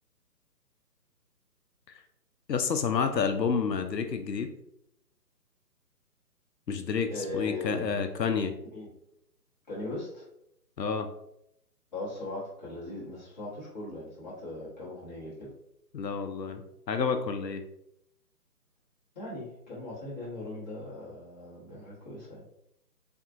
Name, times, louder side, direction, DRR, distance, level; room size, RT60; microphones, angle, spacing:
voice 1, 2.5-4.5 6.7-8.6 10.8-11.1 15.9-17.6, left 5 dB, 90° left, 7 dB, 0.5 m, -29 dB
voice 2, 7.1-8.0 8.7-8.9 9.7-10.2 11.9-15.5 19.1-22.4, left 2 dB, 25° left, -8 dB, 0.9 m, -39 dB
3.5 x 2.3 x 2.5 m, 0.78 s
figure-of-eight pair, 140°, 49 cm